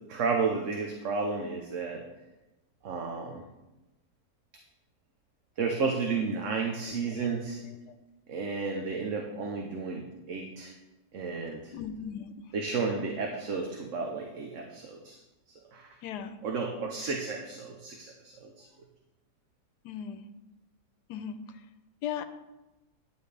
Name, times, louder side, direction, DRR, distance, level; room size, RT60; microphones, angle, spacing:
voice 1, 0.1-2.0 2.8-3.4 5.6-7.6 8.3-10.7 11.1-11.7 12.5-15.2 15.7-15.9 16.4-18.7, right 4 dB, 55° right, 1 dB, 1.1 m, -32 dB
voice 2, 7.1-8.0 11.7-12.5 16.0-16.3 17.0-17.1 19.8-20.2 21.1-21.6 22.0-22.2, left 8 dB, 80° left, 9 dB, 1.3 m, -39 dB
11.0 x 9.4 x 3.4 m, 1.0 s
omnidirectional pair, 1.7 m